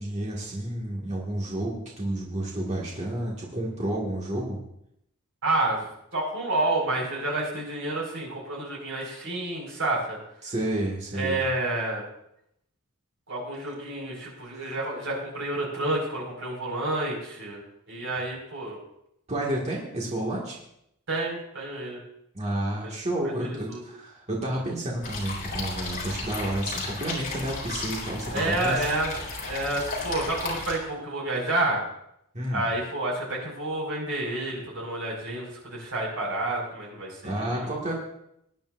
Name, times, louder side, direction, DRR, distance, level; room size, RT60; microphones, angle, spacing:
voice 1, 0.0-4.6 10.4-11.4 14.5-14.7 19.3-20.6 22.3-28.9 32.3-32.7 37.2-38.0, right 1 dB, 30° right, -3 dB, 2.0 m, -30 dB
voice 2, 5.4-5.8 6.1-10.2 11.1-12.0 13.3-17.6 17.9-18.8 21.1-22.0 22.8-22.9 23.2-23.8 28.3-31.8 32.5-37.7, right 2 dB, 60° right, -3 dB, 5.3 m, -29 dB
sound 1, 25.0-30.7, left 3 dB, 40° left, 3.8 m, -34 dB
18.5 x 10.5 x 2.6 m, 0.77 s
head